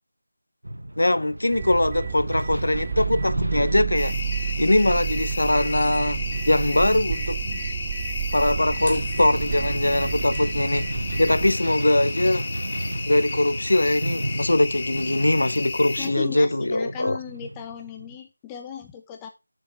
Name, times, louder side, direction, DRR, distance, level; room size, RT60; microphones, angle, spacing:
Metal Shaking, 0.6-18.2, right 1 dB, 85° right, 1.0 m, -33 dB
voice 1, 1.0-4.2 4.6-6.2 6.5-7.6 8.3-10.9 11.2-12.5 13.1-17.2, left 1 dB, 75° left, 0.7 m, -22 dB
sound 1, 1.5-11.5, right 8 dB, 25° right, 0.4 m, -31 dB
sound 2, 3.9-16.1, left 3 dB, 30° left, 1.5 m, -33 dB
voice 2, 16.0-19.3, left 9 dB, 10° left, 1.0 m, -36 dB
7.6 x 6.9 x 4.5 m
figure-of-eight pair, 165°, 0 cm